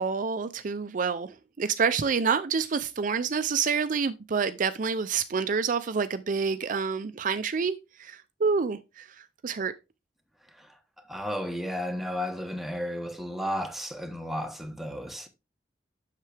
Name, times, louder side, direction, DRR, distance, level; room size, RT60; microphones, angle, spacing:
voice 1, 0.0-9.7, right 5 dB, 50° right, 0.4 m, -28 dB
voice 2, 11.1-15.3, equal, ahead, 1.1 m, -33 dB
7.5 x 6.7 x 3.3 m
head